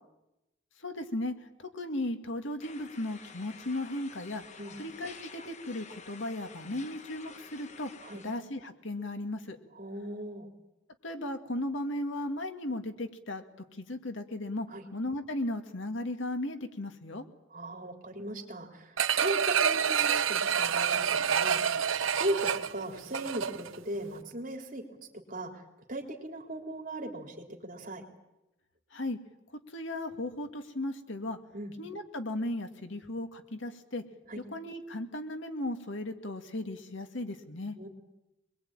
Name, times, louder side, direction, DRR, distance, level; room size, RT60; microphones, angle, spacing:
voice 1, 0.8-4.4 4.8-7.9 8.2-9.6 11.0-13.4 13.8-17.2 28.9-29.2 29.7-31.4 31.8-34.0 34.5-37.8, left 1 dB, 75° left, 6 dB, 2.1 m, -36 dB
sound 1, 2.6-8.4, left 5 dB, 35° left, 1.2 m, -50 dB
voice 2, 9.8-10.5 14.7-14.8 17.5-21.8 22.2-25.0 25.3-25.6 25.9-28.0 31.5-31.7 34.3-34.4 37.8-37.9, right 1 dB, 40° right, 2 dB, 3.4 m, -38 dB
sound 2, 19.0-23.8 24.2-24.3, right 7 dB, 85° right, 0.9 m, -28 dB
24.5 x 21.5 x 8.9 m, 0.93 s
head